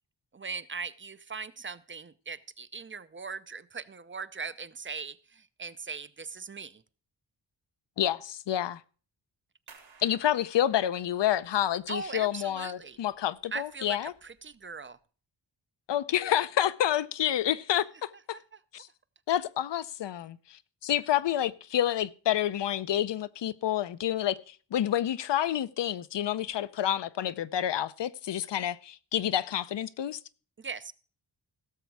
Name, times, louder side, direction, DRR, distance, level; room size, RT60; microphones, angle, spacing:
voice 1, 0.3-6.8 11.9-13.0 13.5-15.0 18.3-18.6 30.6-30.9, right 5 dB, 25° right, 0.5 m, -40 dB
voice 2, 8.0-8.8 10.0-14.1 15.9-18.4 18.7-18.9 19.3-30.2, left 11 dB, 65° left, 0.7 m, -29 dB
sound 1, 9.7-15.0, right 5 dB, 80° right, 3.1 m, -60 dB
16.5 x 7.0 x 4.7 m
wide cardioid pair, 95°, 45 cm